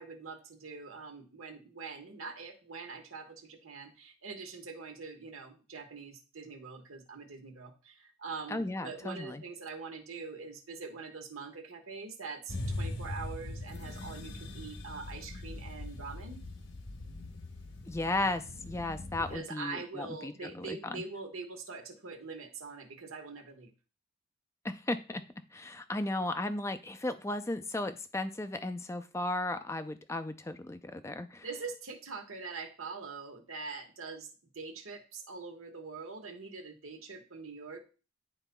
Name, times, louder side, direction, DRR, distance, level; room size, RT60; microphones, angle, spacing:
voice 1, 0.0-16.4 19.2-23.7 31.4-34.3 34.5-37.8, right 4 dB, 85° right, 4 dB, 1.3 m, -44 dB
voice 2, 8.5-9.4 17.9-21.0 24.6-25.2 25.5-31.5, left 2 dB, 15° left, 10 dB, 0.4 m, -35 dB
sound 1, 12.5-19.4, left 2 dB, 65° left, 0.9 m, -41 dB
10.5 x 4.0 x 2.3 m, 0.34 s
head